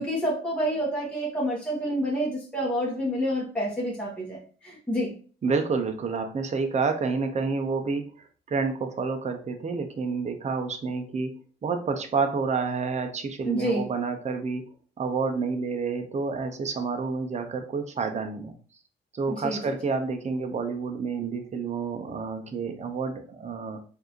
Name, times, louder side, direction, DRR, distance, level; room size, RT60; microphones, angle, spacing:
voice 1, 0.0-5.1 13.4-13.9 19.3-19.7, equal, 5° left, -5 dB, 1.3 m, -28 dB
voice 2, 5.4-8.0 8.5-11.3 11.6-14.6 15.0-18.5 19.1-23.8, right 4 dB, 35° right, 5 dB, 0.7 m, -29 dB
4.4 x 2.7 x 3.0 m, 0.41 s
cardioid pair, 90°, 20 cm